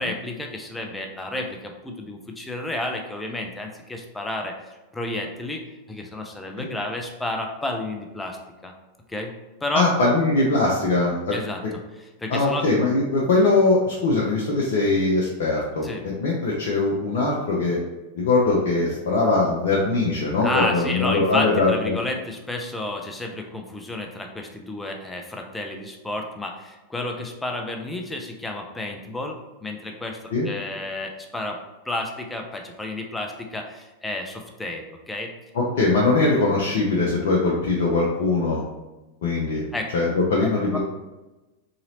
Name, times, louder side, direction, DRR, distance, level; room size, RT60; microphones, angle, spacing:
voice 1, 0.0-4.5 4.9-8.4 8.6-8.7 9.1-9.3 9.6-9.9 11.3-11.6 11.9-12.7 15.8-16.1 20.4-30.2 30.4-31.6 31.9-35.3 39.7-39.9 40.7-40.8, left 2 dB, 10° left, 3 dB, 0.5 m, -31 dB
voice 2, 9.7-11.3 12.3-15.9 16.2-17.8 18.2-22.0 30.3-30.5 35.5-38.6 39.2-39.6 39.9-40.8, left 3 dB, 55° left, -4 dB, 0.6 m, -21 dB
3.9 x 2.9 x 2.7 m, 1.1 s
figure-of-eight pair, 90°, 0 cm